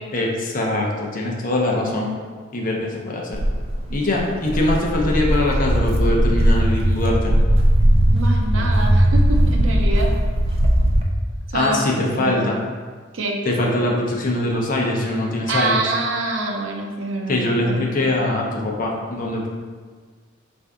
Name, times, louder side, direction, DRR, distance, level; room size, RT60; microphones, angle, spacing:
voice 1, 0.1-2.1 2.5-3.4 3.9-7.3 11.5-12.6 13.4-15.8 17.3-19.5, left 1 dB, 45° left, -1 dB, 0.6 m, -22 dB
voice 2, 1.7-2.2 3.9-4.0 8.1-10.1 11.5-12.5 13.1-13.4 15.5-18.2, right 2 dB, 85° right, 1 dB, 0.6 m, -26 dB
Walk footsteps, 3.3-11.0, right 1 dB, 30° right, 0.4 m, -18 dB
4.5 x 2.6 x 3.5 m, 1.5 s
head